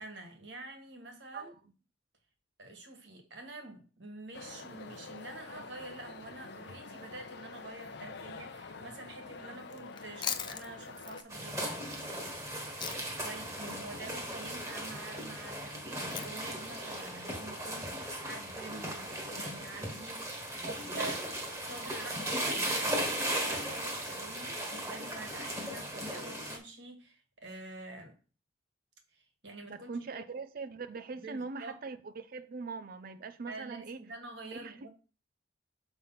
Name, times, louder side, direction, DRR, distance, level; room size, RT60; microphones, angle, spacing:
voice 1, 0.0-1.5 2.6-11.9 13.2-20.2 20.8-21.1 21.6-28.1 29.1-30.2 31.2-31.7 33.5-34.9, right 2 dB, 65° right, 1.7 m, -47 dB
sound 1, 4.3-11.2, left 4 dB, 60° left, 0.7 m, -47 dB
Chewing mastication, 9.9-13.3 13.6-17.9, left 8 dB, 25° left, 0.4 m, -43 dB
sound 2, 11.3-26.6, right 1 dB, 15° right, 1.4 m, -37 dB
voice 2, 20.6-21.2 29.7-34.0 34.5-34.9, right 4 dB, 50° right, 0.4 m, -41 dB
6.9 x 3.5 x 5.6 m
head